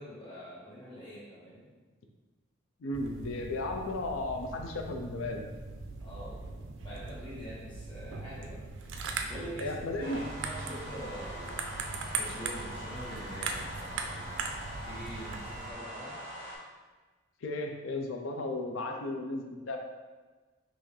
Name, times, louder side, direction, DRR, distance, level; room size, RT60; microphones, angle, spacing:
voice 1, 0.0-1.7 6.0-8.6 9.2-11.6 12.0-14.4 14.8-16.2, equal, 25° left, -9 dB, 1.4 m, -45 dB
voice 2, 2.8-5.5 9.6-10.2 11.9-12.0 17.4-19.8, left 2 dB, 80° left, 3 dB, 0.5 m, -35 dB
sound 1, 2.9-15.7, right 4 dB, 70° right, 0.4 m, -40 dB
sound 2, 10.0-16.5, right 1 dB, 40° right, 1.3 m, -43 dB
5.5 x 2.6 x 3.2 m, 1.3 s
head